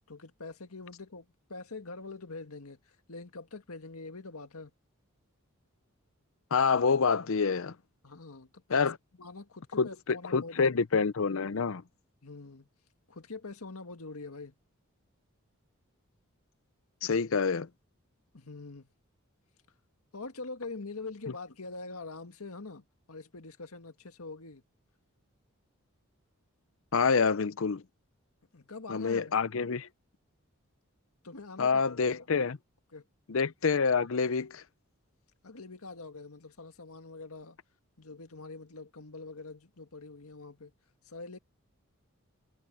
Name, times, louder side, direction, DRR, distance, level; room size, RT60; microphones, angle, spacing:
voice 1, 0.1-4.7 8.0-8.9 9.2-10.8 11.5-11.6 12.2-12.7 13.1-14.5 18.3-18.9 20.1-24.6 28.5-29.3 31.2-32.0 32.9-33.0 35.4-37.6 38.0-40.7 41.1-41.4, left 3 dB, 80° left, 1.8 m, -44 dB
voice 2, 6.5-7.7 8.7-9.0 9.8-11.8 17.0-17.7 26.9-27.8 28.9-29.9 31.6-32.6 33.3-34.6, left 5 dB, 65° left, 0.6 m, -27 dB
head